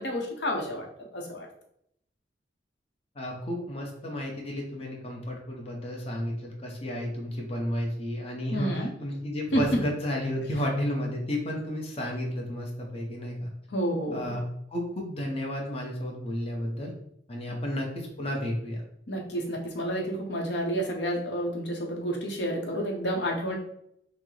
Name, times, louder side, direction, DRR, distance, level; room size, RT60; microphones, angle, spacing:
voice 1, 0.0-1.5 8.5-8.9 9.5-9.8 13.7-14.4 19.1-23.5, equal, 70° left, 0 dB, 0.8 m, -30 dB
voice 2, 3.2-13.5 14.1-14.4 14.7-16.9 17.3-18.8, equal, 35° left, -1 dB, 0.7 m, -32 dB
5.7 x 2.0 x 3.2 m, 0.73 s
head